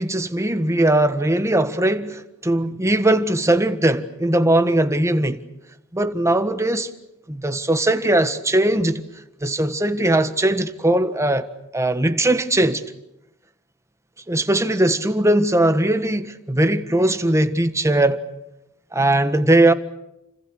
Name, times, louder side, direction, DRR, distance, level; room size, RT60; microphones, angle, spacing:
voice 1, 0.0-5.4 5.9-6.9 7.3-9.0 9.4-11.5 11.7-12.8 14.3-18.2 18.9-19.7, right 1 dB, 15° right, 1.5 m, -19 dB
29.5 x 27.0 x 6.3 m
head